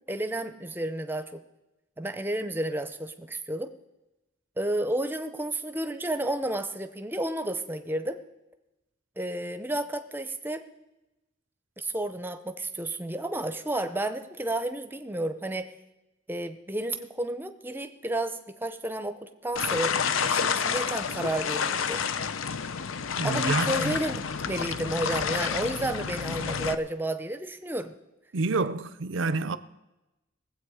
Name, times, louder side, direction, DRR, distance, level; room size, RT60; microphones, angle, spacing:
voice 1, 0.1-1.4 2.0-3.7 4.6-8.2 9.2-10.6 11.8-15.7 16.3-20.0 20.2-22.0 23.2-24.1 24.5-27.9, right 1 dB, 10° right, 0.6 m, -31 dB
sound 1, 19.6-26.8, left 6 dB, 80° left, 0.6 m, -29 dB
voice 2, 23.2-24.0 28.3-29.6, right 3 dB, 70° right, 0.6 m, -28 dB
20.0 x 7.9 x 4.9 m
head